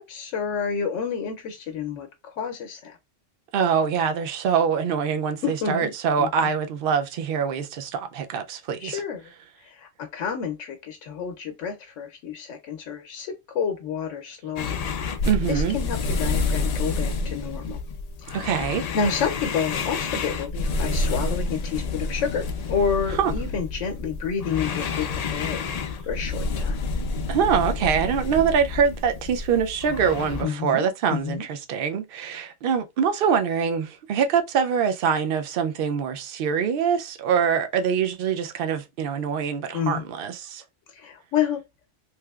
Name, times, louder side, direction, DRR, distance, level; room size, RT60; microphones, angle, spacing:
voice 1, 0.0-3.0 5.4-5.9 6.2-6.5 8.8-9.3 9.6-14.8 15.2-17.8 18.2-18.4 18.9-25.6 26.0-26.8 30.4-30.8 31.1-31.4 39.7-40.0 40.9-41.6, left 6 dB, 90° left, 0.9 m, -29 dB
voice 2, 3.5-9.0 15.3-15.8 18.3-18.9 23.2-23.3 27.3-40.6, right 7 dB, 60° right, 0.6 m, -24 dB
sound 1, 14.6-30.4, left 3 dB, 70° left, 0.3 m, -29 dB
3.2 x 2.8 x 2.3 m
omnidirectional pair, 1.2 m